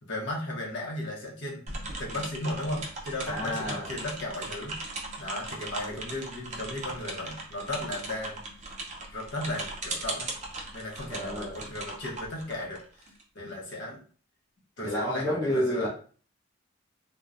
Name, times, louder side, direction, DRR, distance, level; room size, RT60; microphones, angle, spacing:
voice 1, 0.0-4.8 5.2-8.4 9.1-10.3 10.7-12.8 13.3-14.0 14.8-15.9, left 1 dB, 55° left, -1 dB, 0.7 m, -35 dB
sound 1, 1.7-13.2, right 2 dB, 35° right, 0.5 m, -39 dB
voice 2, 3.3-4.0 5.9-6.0 11.1-11.6 14.8-15.9, equal, 15° left, -6 dB, 0.7 m, -30 dB
2.9 x 2.1 x 2.4 m, 0.42 s
head